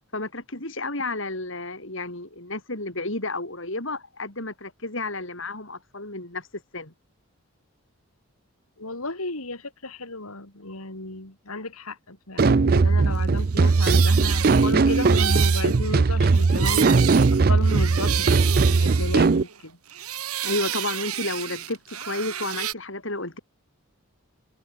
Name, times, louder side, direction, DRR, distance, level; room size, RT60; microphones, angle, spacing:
voice 1, 0.1-6.9 20.4-23.4, left 2 dB, 60° left, 4.3 m, -31 dB
voice 2, 8.8-16.8 17.3-19.8, left 2 dB, 80° left, 4.6 m, -34 dB
sound 1, 12.4-19.4, right 4 dB, 40° right, 0.4 m, -19 dB
sound 2, 13.4-19.6 19.9-22.7, right 11 dB, 90° right, 5.1 m, -30 dB
head